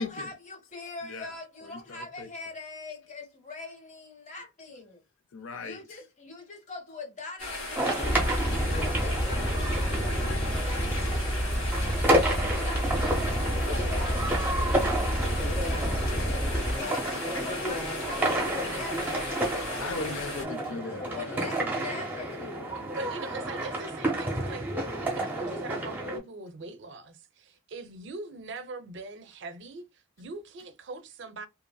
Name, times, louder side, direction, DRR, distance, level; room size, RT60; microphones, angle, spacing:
voice 1, 0.0-5.0 5.6-11.5 12.0-16.4 16.8-20.3 21.0-22.4, left 3 dB, 35° left, 0.9 m, -43 dB
voice 2, 1.7-2.3 5.3-5.8 19.8-22.0 22.4-22.9, left 3 dB, 70° left, 0.5 m, -38 dB
sound 1, 7.4-20.4, left 2 dB, 90° left, 1.6 m, -36 dB
sound 2, 7.7-26.2, right 1 dB, 10° right, 0.7 m, -31 dB
sound 3, 8.0-16.8, equal, 10° left, 0.4 m, -29 dB
voice 3, 22.7-31.5, right 3 dB, 55° right, 0.4 m, -42 dB
2.8 x 2.6 x 2.2 m
head